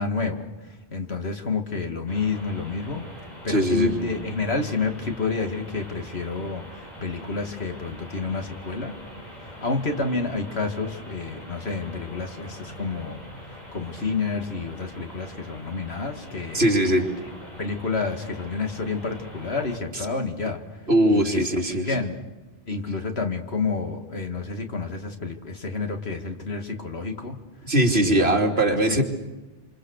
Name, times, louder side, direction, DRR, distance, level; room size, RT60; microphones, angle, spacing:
voice 1, 0.0-3.1 3.4-8.9 9.4-13.2 13.5-16.7 17.6-21.5 21.9-22.2 22.7-27.4 28.0-28.4 28.9-29.0, left 4 dB, 75° left, 5 dB, 2.7 m, -29 dB
sound 1, 2.1-19.8, equal, 40° left, 6.4 m, -43 dB
voice 2, 3.5-4.0 16.5-17.1 20.9-21.9 27.6-29.0, right 1 dB, 75° right, 3 dB, 3.3 m, -20 dB
28.0 x 27.0 x 6.7 m, 1.1 s
omnidirectional pair, 1.1 m